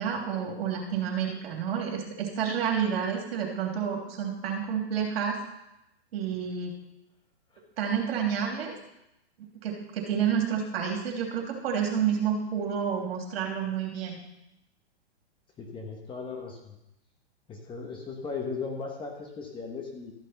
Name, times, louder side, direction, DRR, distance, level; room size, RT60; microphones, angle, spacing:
voice 1, 0.0-5.4 6.1-6.7 7.8-8.7 9.6-14.2, right 7 dB, 65° right, 1 dB, 3.2 m, -29 dB
voice 2, 15.6-16.7 17.5-20.1, left 4 dB, 15° left, 2 dB, 1.3 m, -37 dB
13.5 x 6.4 x 5.9 m, 0.87 s
hypercardioid pair, 145°, 32 cm